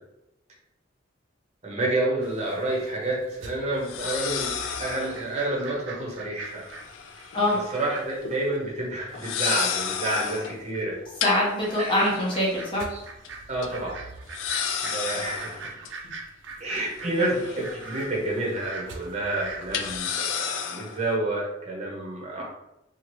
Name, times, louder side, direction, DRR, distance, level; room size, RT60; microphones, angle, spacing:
voice 1, 1.6-4.5 4.8-6.8 7.5-11.0 11.8-11.9 12.9-13.0 13.5-13.9 14.8-15.6 16.6-22.4, right 2 dB, 35° right, -3 dB, 0.7 m, -29 dB
sound 1, 2.2-2.3 3.8-5.3 6.7-7.8 8.1-8.3 9.1-10.6 11.2-12.8 13.2-13.3 13.6-13.7 14.3-15.9 16.8-18.2 18.5-18.6 19.7-21.0, left 7 dB, 75° left, 0.3 m, -32 dB
sound 2, 2.2-20.0, right 4 dB, 75° right, 0.5 m, -43 dB
voice 2, 11.2-12.8 17.2-17.3, left 1 dB, 25° left, -5 dB, 0.7 m, -24 dB
2.7 x 2.4 x 3.0 m, 0.91 s
head